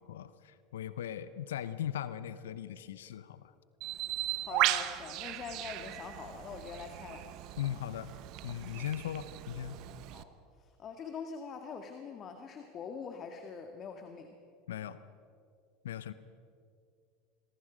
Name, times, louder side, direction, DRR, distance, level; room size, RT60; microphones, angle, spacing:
voice 1, 0.0-3.5 7.6-8.1 8.4-9.8 14.7-15.0 15.8-16.1, left 11 dB, 75° left, 14 dB, 0.8 m, -39 dB
Bird, 3.8-10.2, right 15 dB, 55° right, 1.1 m, -36 dB
voice 2, 4.4-7.3 10.1-14.3, left 6 dB, 40° left, 5 dB, 1.9 m, -44 dB
26.5 x 22.0 x 5.2 m, 2.4 s
hypercardioid pair, 80°, 0 cm